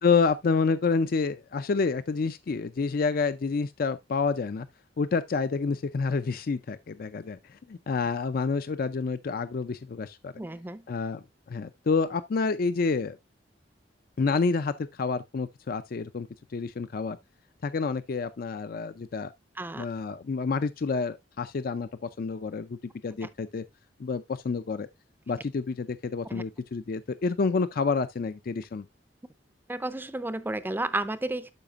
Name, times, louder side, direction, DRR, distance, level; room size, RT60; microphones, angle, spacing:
voice 1, 0.0-4.7 5.0-10.3 10.9-13.2 14.2-16.3 16.5-17.2 17.6-19.3 19.8-22.8 23.0-23.6 24.0-24.9 25.3-28.9, left 4 dB, 50° left, 0.4 m, -28 dB
voice 2, 10.4-10.8 19.6-19.9 26.3-26.4 29.7-31.5, right 2 dB, 10° right, 0.5 m, -32 dB
12.0 x 5.0 x 2.4 m
head